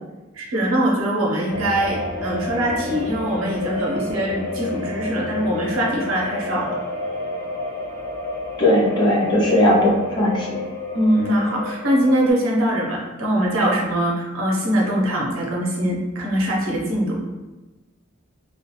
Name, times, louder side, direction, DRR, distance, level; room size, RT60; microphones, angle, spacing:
voice 1, 0.3-6.8 10.9-17.2, right 1 dB, 85° right, -3 dB, 0.7 m, -22 dB
sound 1, 1.5-12.3, left 2 dB, 90° left, 0.9 m, -30 dB
voice 2, 8.6-10.5, left 1 dB, 20° left, -3 dB, 0.5 m, -18 dB
2.3 x 2.2 x 2.9 m, 1.1 s
head